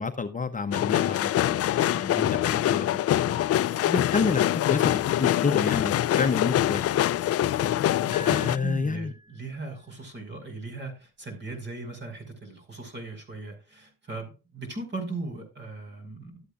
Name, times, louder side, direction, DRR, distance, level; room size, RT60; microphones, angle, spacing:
voice 1, 0.0-3.4 3.9-6.8 8.4-9.1, left 4 dB, 25° left, 0.8 m, -29 dB
sound 1, 0.7-8.6, left 12 dB, 55° left, 0.4 m, -24 dB
voice 2, 1.7-2.3 7.4-7.7 8.0-16.4, right 3 dB, 35° right, 5.2 m, -38 dB
sound 2, 8.1-9.7, equal, 15° right, 5.4 m, -44 dB
13.0 x 8.3 x 2.5 m
cardioid pair, 90°, 30 cm